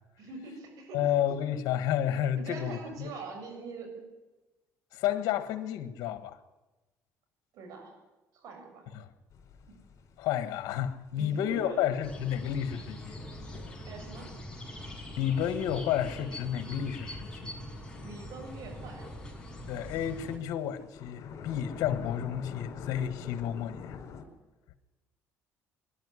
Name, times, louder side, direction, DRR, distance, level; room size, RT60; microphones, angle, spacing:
voice 1, 0.2-1.2 2.4-4.1 7.5-8.0 8.3-8.9 9.7-9.8 11.1-11.8 13.9-14.3 18.0-19.1, right 4 dB, 70° right, 7.3 m, -44 dB
voice 2, 0.9-3.1 4.9-6.4 8.9-9.1 10.2-13.2 15.2-17.6 19.7-24.0, left 10 dB, 80° left, 1.6 m, -31 dB
sound 1, 9.3-15.6 18.4-24.2, left 6 dB, 55° left, 4.5 m, -46 dB
sound 2, 12.0-20.4, left 1 dB, 10° left, 5.4 m, -43 dB
22.0 x 12.0 x 9.9 m
cardioid pair, 95°, 6 cm